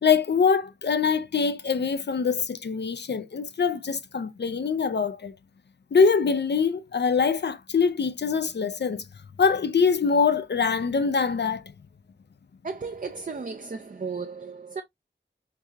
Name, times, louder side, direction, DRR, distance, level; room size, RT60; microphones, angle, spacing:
voice 1, 0.0-5.3 5.9-9.0 9.4-11.6, left 5 dB, 65° left, 0.4 m, -23 dB
voice 2, 12.6-14.8, right 4 dB, 45° right, 0.5 m, -34 dB
4.6 x 2.6 x 2.3 m
wide cardioid pair, 45°, 19 cm